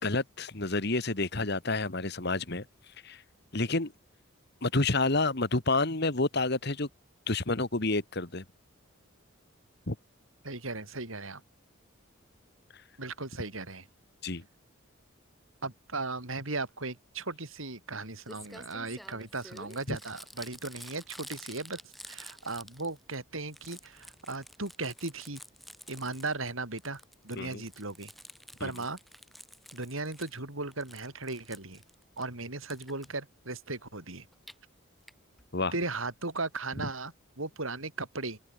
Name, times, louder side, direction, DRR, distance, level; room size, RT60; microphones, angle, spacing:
voice 1, 0.0-2.7 3.0-3.2 3.5-3.9 4.6-6.9 7.3-8.4 9.9-10.0 14.2-14.4 19.9-20.0 27.4-27.6 28.6-28.7 35.5-35.7 36.8-36.9, left 3 dB, 55° left, 1.9 m, -29 dB
voice 2, 10.4-11.4 13.0-13.9 15.6-21.8 22.1-25.4 25.9-28.1 28.6-29.0 29.7-31.8 32.2-34.3 35.7-38.4, right 3 dB, 75° right, 4.8 m, -37 dB
Crumpling crinkling, 17.9-18.0 18.3-23.2 23.4-26.5 26.8-30.4 30.7-32.2 32.7-33.1 34.2-34.5 35.1-35.2 35.4-35.5 35.7-35.8, equal, ahead, 5.2 m, -50 dB
open air
head